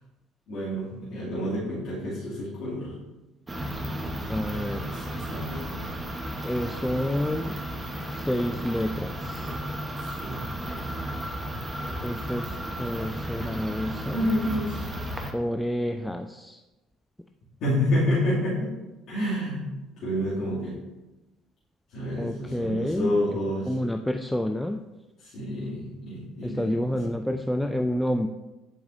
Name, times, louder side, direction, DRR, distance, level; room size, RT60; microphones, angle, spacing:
voice 1, 0.5-2.9 4.5-5.7 10.0-10.5 13.4-13.5 14.1-14.8 17.6-18.7 19.1-19.7 20.0-20.8 21.9-23.7 25.2-27.1, equal, 55° left, -11 dB, 2.5 m, -29 dB
sound 1, 3.5-15.3, equal, 20° right, 1.0 m, -34 dB
voice 2, 4.3-4.8 6.4-7.6 8.1-9.5 12.0-14.3 15.3-16.6 22.2-23.4 23.7-24.8 26.4-28.3, equal, 5° left, 5 dB, 0.4 m, -29 dB
10.5 x 4.8 x 2.6 m, 1.1 s
figure-of-eight pair, 60°, 0 cm